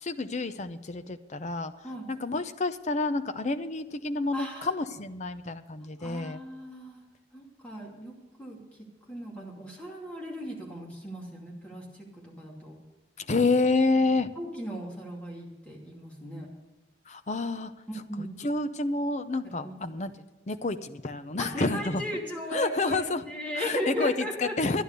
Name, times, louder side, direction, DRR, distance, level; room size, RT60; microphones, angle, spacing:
voice 1, 0.0-1.7 2.1-6.4 13.3-14.3 17.1-17.7 18.4-20.1 20.5-22.0 22.5-23.2 23.6-24.8, left 3 dB, 40° left, 10 dB, 0.7 m, -28 dB
voice 2, 4.3-4.7 6.0-7.0 7.3-8.1 8.4-12.7 14.4-16.5 18.1-18.4 19.4-19.7 21.4-24.5, equal, 5° left, -3 dB, 2.7 m, -37 dB
11.0 x 11.0 x 6.7 m, 1.1 s
head